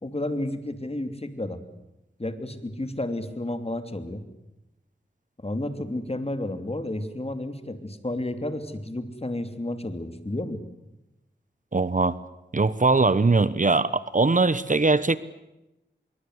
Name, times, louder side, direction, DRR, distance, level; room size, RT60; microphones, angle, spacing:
voice 1, 0.0-1.6 2.2-4.2 5.4-10.6, left 1 dB, 30° left, 9 dB, 2.9 m, -31 dB
voice 2, 11.7-12.1 12.5-15.2, right 3 dB, 45° right, 16 dB, 1.0 m, -21 dB
25.5 x 22.5 x 8.1 m, 0.92 s
wide cardioid pair, 60°, 19 cm